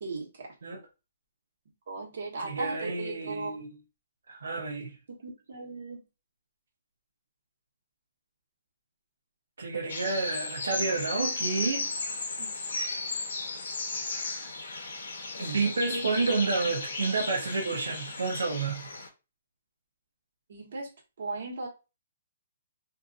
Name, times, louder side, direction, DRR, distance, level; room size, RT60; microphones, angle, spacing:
voice 1, 0.0-0.5 1.9-3.6 5.1-6.0 12.4-12.5 20.5-20.9 21.2-21.7, right 3 dB, 60° right, 1.1 m, -37 dB
voice 2, 2.4-3.7 4.3-5.0 9.6-11.9 15.4-18.9, right 4 dB, 85° right, 0.6 m, -30 dB
sound 1, 9.9-19.1, left 3 dB, 70° left, 0.7 m, -35 dB
2.5 x 2.5 x 2.4 m
hypercardioid pair, 160°, 0 cm